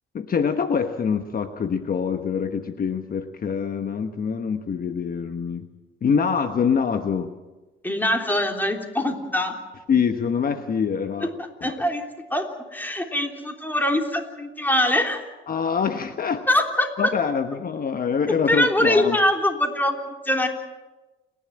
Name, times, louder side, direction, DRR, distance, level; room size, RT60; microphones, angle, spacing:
voice 1, 0.1-5.6 6.0-7.3 9.9-11.3 11.6-11.7 15.5-16.5 17.0-19.2, left 6 dB, 45° left, 8 dB, 1.1 m, -25 dB
voice 2, 7.8-9.6 11.2-11.3 11.6-12.0 12.3-15.2 16.5-17.1 18.3-20.5, left 1 dB, 10° left, 3 dB, 3.4 m, -23 dB
29.5 x 11.0 x 8.8 m, 1.1 s
cardioid pair, 90°, 20 cm